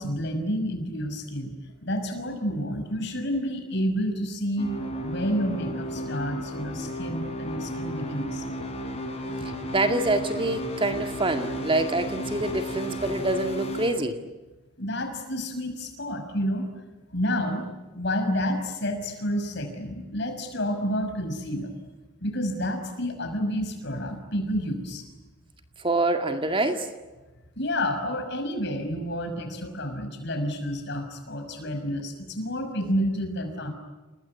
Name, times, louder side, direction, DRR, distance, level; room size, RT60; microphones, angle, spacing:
voice 1, 0.0-1.5 1.8-4.7 5.0-8.4 14.8-16.7 17.1-17.6 17.9-21.7 22.2-25.0 27.6-33.7, equal, 50° left, 6 dB, 5.9 m, -29 dB
sound 1, 4.6-13.9, equal, 30° left, 6.0 m, -33 dB
voice 2, 9.7-14.2 25.8-26.9, right 2 dB, 25° right, 6 dB, 2.1 m, -26 dB
30.0 x 20.0 x 9.8 m, 1.2 s
head